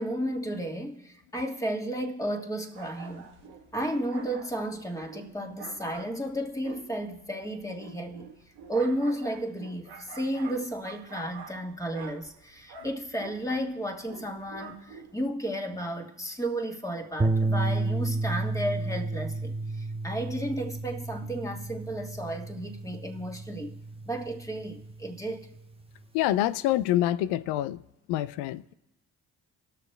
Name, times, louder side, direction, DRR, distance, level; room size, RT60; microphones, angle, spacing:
voice 1, 0.0-3.3 3.7-8.3 8.7-23.8 24.1-25.5, right 1 dB, 10° left, 1.9 m, -33 dB
sound 1, 2.7-15.3, right 5 dB, 75° right, 1.4 m, -47 dB
sound 2, 17.2-25.6, right 3 dB, 15° right, 0.7 m, -32 dB
voice 2, 26.1-27.8 28.1-28.7, left 13 dB, 80° left, 0.5 m, -26 dB
19.5 x 6.6 x 3.4 m
hypercardioid pair, 55°, 40 cm